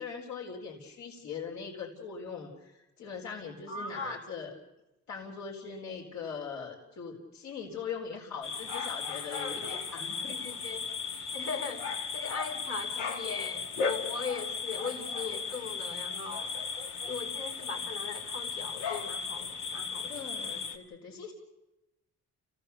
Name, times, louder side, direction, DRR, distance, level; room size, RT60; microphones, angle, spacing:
voice 1, 0.0-4.5 5.1-10.4 20.1-21.3, left 6 dB, 70° left, -2 dB, 4.1 m, -41 dB
voice 2, 3.7-4.2 9.3-9.7 10.3-10.9 11.3-11.9 12.1-16.5 17.0-20.4, left 4 dB, 45° left, 3 dB, 3.7 m, -39 dB
sound 1, 8.4-20.8, left 5 dB, 85° left, 2.4 m, -36 dB
29.5 x 16.5 x 6.8 m, 0.98 s
cardioid pair, 90°, 30 cm